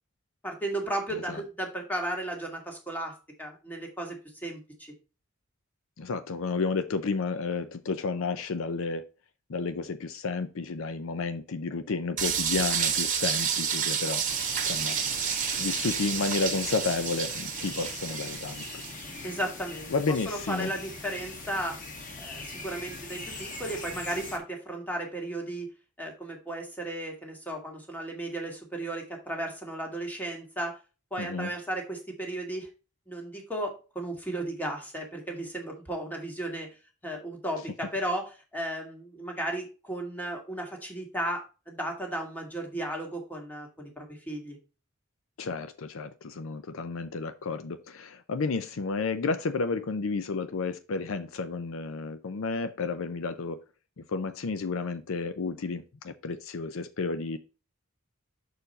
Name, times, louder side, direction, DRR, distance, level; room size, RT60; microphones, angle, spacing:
voice 1, 0.4-4.9 19.2-19.9 20.3-21.8 22.2-25.7 26.0-30.8 31.1-32.7 33.1-36.8 37.0-44.6, right 1 dB, 10° left, 1.7 m, -35 dB
voice 2, 6.0-9.0 9.5-14.2 14.6-15.2 15.6-18.6 19.9-20.7 31.2-31.5 45.4-53.6 54.0-57.4, left 4 dB, 70° left, 0.5 m, -31 dB
sound 1, 12.2-19.0, right 7 dB, 40° right, 1.2 m, -30 dB
sound 2, 14.2-24.4, left 3 dB, 40° left, 1.2 m, -41 dB
6.6 x 4.5 x 4.1 m
head